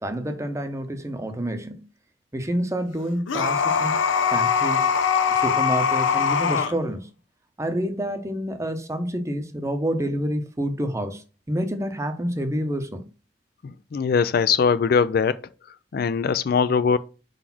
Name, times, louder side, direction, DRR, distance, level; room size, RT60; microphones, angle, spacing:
voice 1, 0.0-1.9 2.3-3.9 4.3-4.9 5.3-7.1 7.6-13.1, equal, 15° right, 0.8 m, -28 dB
sound 1, 3.3-6.7, left 6 dB, 90° left, 0.7 m, -22 dB
voice 2, 13.6-15.4 15.9-17.0, left 6 dB, 50° left, 0.3 m, -21 dB
4.9 x 4.1 x 5.8 m
head